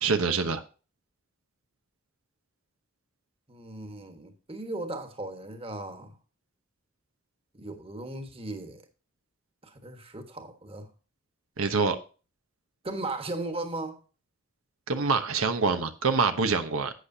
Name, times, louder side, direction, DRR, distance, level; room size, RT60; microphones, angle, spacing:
voice 1, 0.0-0.6 11.6-12.0 14.9-16.9, right 4 dB, 85° right, 1.0 m, -25 dB
voice 2, 3.5-6.2 7.5-8.8 9.6-10.9 12.8-14.0, right 2 dB, 25° right, 1.4 m, -37 dB
11.5 x 8.3 x 2.8 m
head